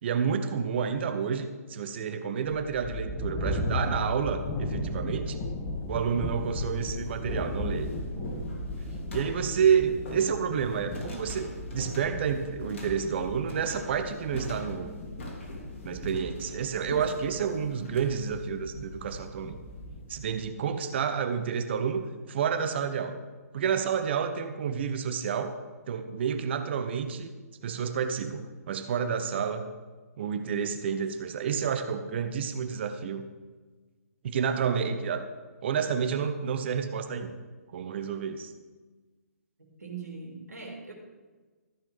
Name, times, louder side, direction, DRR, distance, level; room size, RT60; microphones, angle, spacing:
voice 1, 0.0-5.4 5.9-7.9 8.2-8.5 9.1-14.9 15.8-19.6 20.1-23.2 23.5-25.6 25.9-27.3 27.6-29.7 30.2-33.2 34.2-35.3 35.6-37.3 37.7-38.5, right 7 dB, 45° right, 8 dB, 1.0 m, -29 dB
sound 1, 2.5-20.5, left 1 dB, 25° left, 1.4 m, -36 dB
sound 2, 3.5-3.9 4.9-5.0 5.8-5.9 6.3-19.8, left 1 dB, 50° left, 2.8 m, -43 dB
voice 2, 16.4-16.9 39.6-40.9, right 4 dB, 80° right, 0 dB, 2.8 m, -42 dB
14.0 x 5.8 x 6.7 m, 1.3 s
figure-of-eight pair, 135°, 9 cm